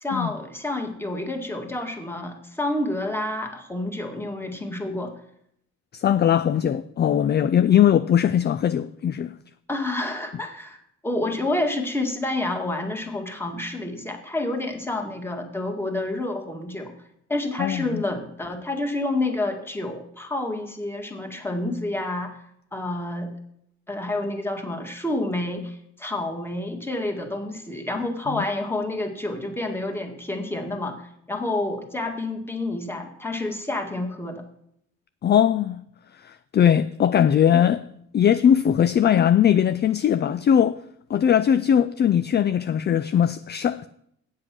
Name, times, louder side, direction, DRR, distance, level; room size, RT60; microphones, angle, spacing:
voice 1, 0.0-5.1 9.7-10.8 11.0-16.9 17.3-22.3 22.7-23.3 23.9-31.0 31.3-34.4, left 2 dB, 10° left, 1.8 m, -29 dB
voice 2, 5.9-9.3 17.6-18.0 28.3-28.4 35.2-35.8 36.2-37.8 38.1-40.8 41.1-43.9, left 9 dB, 35° left, 0.4 m, -20 dB
8.1 x 7.6 x 6.0 m
cardioid pair, 90°, 30 cm